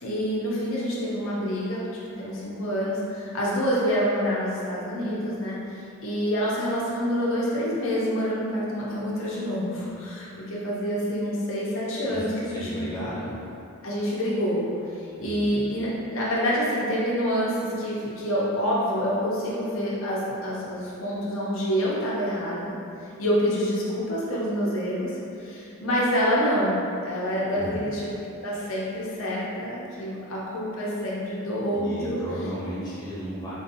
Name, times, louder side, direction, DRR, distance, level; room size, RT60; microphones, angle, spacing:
voice 1, 0.0-12.9 13.8-14.7 14.9-22.7 23.2-26.8 27.0-28.1 28.4-32.2, equal, 70° left, -6 dB, 0.8 m, -27 dB
voice 2, 12.1-13.4 15.2-15.6 27.5-27.8 31.7-33.6, equal, 20° left, -11 dB, 0.8 m, -35 dB
3.7 x 2.7 x 2.6 m, 2.8 s
head